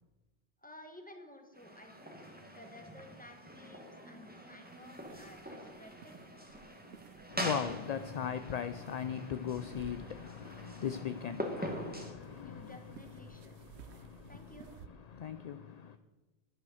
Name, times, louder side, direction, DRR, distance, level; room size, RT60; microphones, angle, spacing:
voice 1, 0.6-6.4 12.4-13.6 13.9-14.7, left 1 dB, 10° left, 1.4 m, -55 dB
sound 1, 1.5-12.1, equal, 10° right, 1.4 m, -44 dB
sound 2, 4.6-14.9, right 8 dB, 85° right, 0.9 m, -57 dB
voice 2, 7.3-12.8 13.3-16.0, left 8 dB, 55° left, 0.5 m, -39 dB
11.5 x 8.7 x 6.3 m
omnidirectional pair, 1.1 m